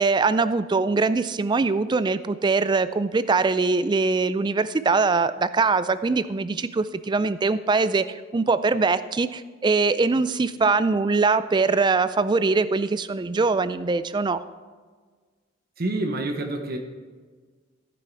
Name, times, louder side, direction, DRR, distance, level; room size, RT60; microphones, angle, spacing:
voice 1, 0.0-14.4, right 4 dB, 25° right, 14 dB, 0.3 m, -22 dB
voice 2, 15.8-16.8, right 2 dB, 50° right, 4 dB, 0.9 m, -27 dB
14.5 x 6.2 x 4.6 m, 1.5 s
head